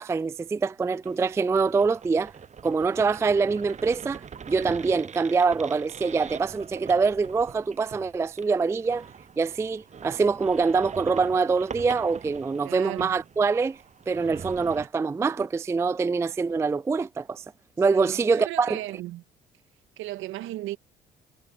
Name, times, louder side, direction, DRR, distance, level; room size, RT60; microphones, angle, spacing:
voice 1, 0.0-2.3 2.6-9.1 9.4-13.8 14.1-17.4 17.8-18.8, right 4 dB, 15° right, 0.3 m, -24 dB
sound 1, 1.0-14.9, right 7 dB, 35° right, 0.9 m, -43 dB
voice 2, 12.6-13.2 17.9-19.2 20.0-20.8, right 16 dB, 70° right, 1.9 m, -36 dB
hypercardioid pair, 55°, 21 cm